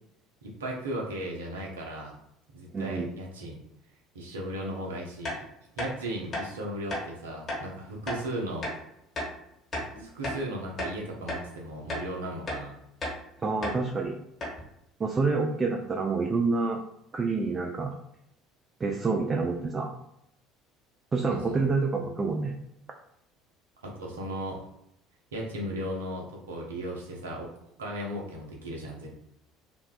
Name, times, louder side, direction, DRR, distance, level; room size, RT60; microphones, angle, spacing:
voice 1, 0.4-2.2 2.5-3.6 4.1-5.4 5.8-8.7 9.7-12.8 21.3-21.6 23.8-24.6 25.3-27.5 27.8-29.2, right 1 dB, 75° right, -1 dB, 0.5 m, -36 dB
voice 2, 2.7-3.1 13.4-14.2 15.0-16.8 17.1-17.9 18.8-19.9 21.1-22.5, right 4 dB, 25° right, 1 dB, 0.3 m, -27 dB
sound 1, 5.2-5.4 5.8-5.9 6.3-6.5 6.9-7.0 7.5-7.6 8.1-8.2 8.6-8.8 9.2-9.3 9.7-10.4 10.8-10.9 11.3-11.4 11.9-12.1 12.5-12.6 13.0-13.2 13.6-13.8 14.1-14.2 14.4-14.6, left 1 dB, 35° left, 1.1 m, -33 dB
2.6 x 2.1 x 2.3 m, 0.78 s
figure-of-eight pair, 60°, 0 cm